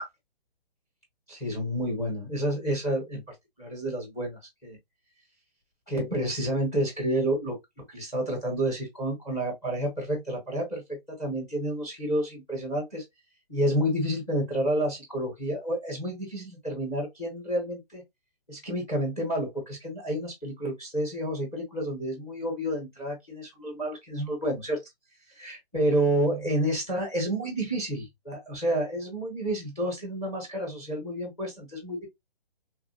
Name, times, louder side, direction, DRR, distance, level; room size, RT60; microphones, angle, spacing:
voice 1, 1.3-4.8 5.9-7.6 7.9-13.0 13.5-18.0 18.5-24.8 25.4-32.1, right 1 dB, 10° left, 0.9 m, -30 dB
3.1 x 2.4 x 2.6 m
hypercardioid pair, 165°, 30 cm